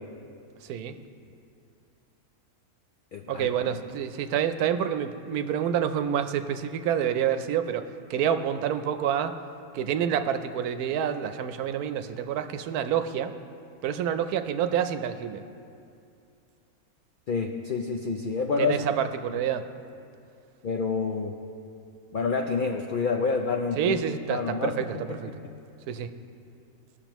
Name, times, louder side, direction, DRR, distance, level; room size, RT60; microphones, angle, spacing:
voice 1, 0.6-1.0 3.3-9.3 9.7-13.3 13.8-15.4 18.6-19.6 23.8-25.3 25.9-26.1, right 9 dB, 85° right, 9 dB, 1.1 m, -28 dB
voice 2, 3.1-3.5 17.3-18.8 20.6-21.4 22.1-24.0 24.3-24.7 25.1-25.3, left 4 dB, 80° left, 3 dB, 0.4 m, -28 dB
18.0 x 6.5 x 3.0 m, 2.5 s
omnidirectional pair, 1.5 m